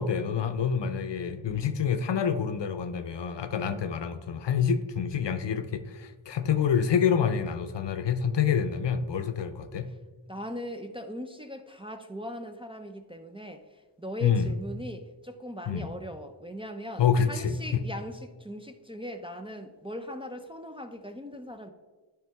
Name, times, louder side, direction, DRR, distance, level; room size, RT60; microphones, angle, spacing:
voice 1, 0.0-9.9 14.2-14.5 15.7-15.9 17.0-17.5, left 7 dB, 60° left, 9 dB, 0.7 m, -27 dB
voice 2, 10.3-21.7, equal, 10° right, 5 dB, 0.5 m, -40 dB
10.0 x 3.4 x 3.5 m, 1.3 s
cardioid pair, 50°, 49 cm